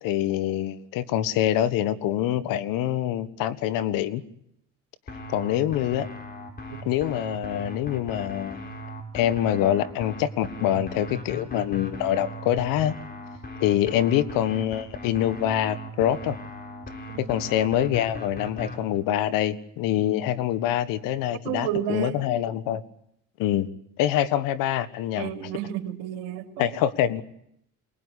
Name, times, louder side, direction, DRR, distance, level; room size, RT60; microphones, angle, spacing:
voice 1, 0.0-4.2 5.3-6.1 6.8-8.7 9.1-12.9 13.6-16.4 17.2-22.8 23.4-23.7 24.0-25.3 26.6-27.2, left 11 dB, 75° left, 15 dB, 1.5 m, -25 dB
sound 1, 5.1-18.8, left 1 dB, 25° left, 5.9 m, -38 dB
voice 2, 21.4-22.1 25.2-26.6, right 11 dB, 80° right, 6 dB, 2.9 m, -31 dB
24.0 x 20.0 x 10.0 m, 0.76 s
supercardioid pair, 90°, 34 cm